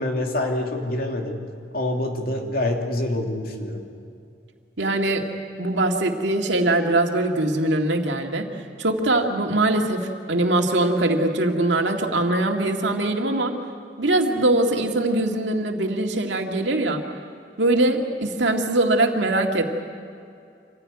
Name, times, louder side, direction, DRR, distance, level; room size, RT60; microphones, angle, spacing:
voice 1, 0.0-1.4 1.7-3.9, left 1 dB, 55° left, 2 dB, 2.7 m, -26 dB
voice 2, 4.8-5.3 5.6-8.5 8.8-13.5 14.0-17.0 17.6-19.7, right 2 dB, 85° right, 2 dB, 2.2 m, -22 dB
26.0 x 15.5 x 9.6 m, 2.5 s
head